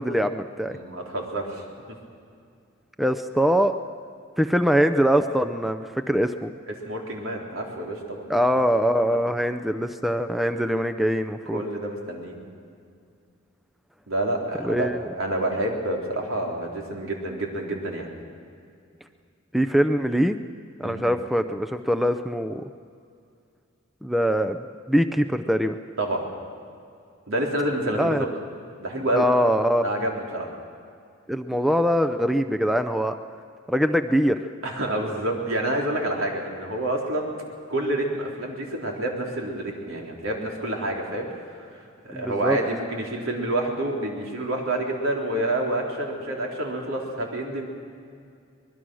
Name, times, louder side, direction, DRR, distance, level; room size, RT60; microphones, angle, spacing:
voice 1, 0.0-0.8 3.0-3.8 4.4-6.5 8.3-11.6 14.6-15.1 19.5-20.4 20.8-22.6 24.0-24.6 24.9-25.8 28.0-28.3 29.1-29.9 31.3-33.1 33.7-34.4 42.1-42.6, equal, ahead, 7 dB, 0.5 m, -23 dB
voice 2, 0.6-1.6 6.7-8.3 9.1-9.2 11.5-12.4 14.1-14.9 15.1-18.1 20.8-21.0 26.0-26.2 27.3-28.3 28.8-29.3 29.8-30.5 34.6-37.4 37.7-41.7 42.0-47.6, right 1 dB, 80° right, 0 dB, 3.9 m, -28 dB
24.5 x 21.0 x 6.3 m, 2.4 s
head